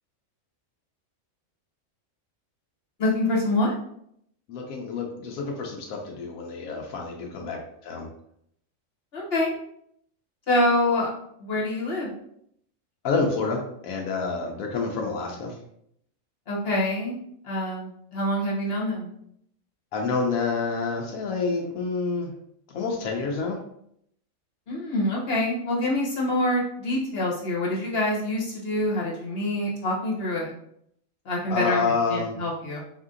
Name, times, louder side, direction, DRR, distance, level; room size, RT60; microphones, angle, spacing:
voice 1, 3.0-3.7 9.1-9.5 10.5-11.1 11.4-12.1 16.5-17.2 17.4-19.1 24.7-30.5 31.2-32.8, left 1 dB, 50° left, -4 dB, 1.2 m, -26 dB
voice 2, 4.5-8.1 13.0-15.5 19.9-22.3 22.7-23.6 31.5-32.4, left 4 dB, 90° left, 1 dB, 1.1 m, -28 dB
4.1 x 2.7 x 3.7 m, 0.71 s
omnidirectional pair, 1.4 m